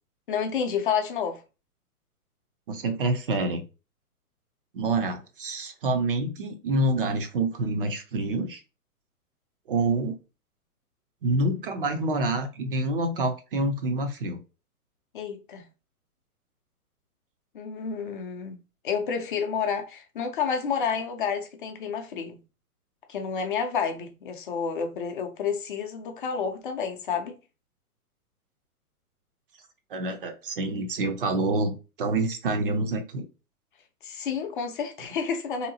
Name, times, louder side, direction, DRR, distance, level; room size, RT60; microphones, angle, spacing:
voice 1, 0.3-1.4 15.1-15.6 17.5-18.6 18.8-22.4 23.1-27.4 34.0-35.7, left 6 dB, 35° left, 0.6 m, -30 dB
voice 2, 2.7-3.6 4.7-8.6 9.7-10.2 11.2-14.4 29.9-33.3, right 2 dB, 40° right, 0.5 m, -27 dB
3.6 x 2.8 x 2.7 m
figure-of-eight pair, 120°, 45 cm